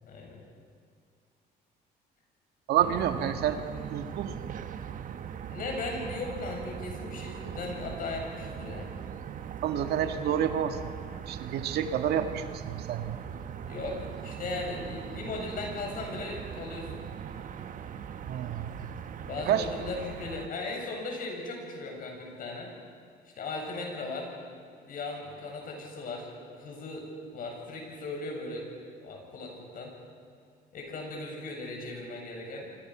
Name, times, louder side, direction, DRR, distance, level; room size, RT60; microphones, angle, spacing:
voice 1, 0.0-0.4 5.5-8.9 13.6-17.1 19.2-22.7 23.4-24.3 24.8-28.7 29.0-29.9 30.7-32.7, left 3 dB, 55° left, 1 dB, 7.6 m, -37 dB
voice 2, 2.7-3.6 3.9-4.4 9.6-10.8 11.3-13.2 18.3-18.9 19.5-19.7, right 9 dB, 75° right, 7 dB, 1.9 m, -29 dB
sound 1, 2.8-20.5, right 8 dB, 50° right, 1.2 m, -40 dB
28.5 x 25.5 x 6.2 m, 2.2 s
cardioid pair, 110°, 17 cm